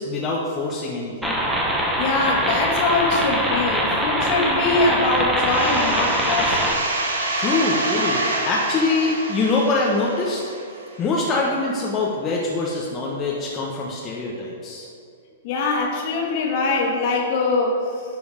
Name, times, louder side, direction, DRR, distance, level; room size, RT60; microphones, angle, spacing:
voice 1, 0.0-1.4 7.4-10.4 11.0-14.9, left 3 dB, 25° left, -3 dB, 1.2 m, -24 dB
sound 1, 1.2-6.7, right 1 dB, 5° right, 1.3 m, -23 dB
voice 2, 2.0-6.7 15.4-18.0, left 3 dB, 45° left, -1 dB, 2.0 m, -22 dB
sound 2, 5.5-11.0, right 2 dB, 70° right, 1.8 m, -27 dB
11.5 x 5.1 x 5.2 m, 2.5 s
hypercardioid pair, 115°, 0 cm